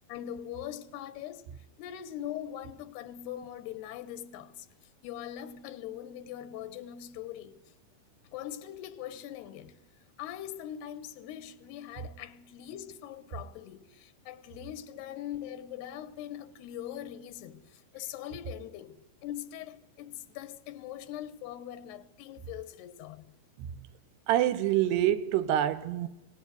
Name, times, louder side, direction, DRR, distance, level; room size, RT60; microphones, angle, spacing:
voice 1, 0.1-1.5 1.8-4.7 5.0-7.6 8.3-9.8 10.2-23.3, left 11 dB, 85° left, 3.2 m, -42 dB
voice 2, 24.3-26.1, right 12 dB, 85° right, 3.1 m, -26 dB
23.0 x 18.5 x 9.5 m
omnidirectional pair, 4.7 m